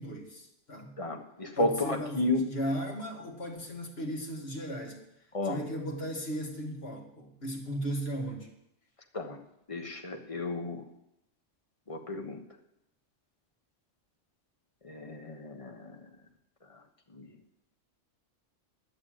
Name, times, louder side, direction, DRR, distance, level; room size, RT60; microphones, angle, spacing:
voice 1, 0.0-1.0 1.6-5.1 5.4-8.5, equal, 55° left, 0 dB, 2.4 m, -36 dB
voice 2, 1.0-2.4 5.3-5.6 9.1-9.4 9.7-10.8 11.9-12.4 14.8-15.8 17.1-17.3, left 2 dB, 30° left, 4 dB, 1.3 m, -32 dB
11.0 x 7.0 x 9.1 m, 0.80 s
omnidirectional pair, 1.2 m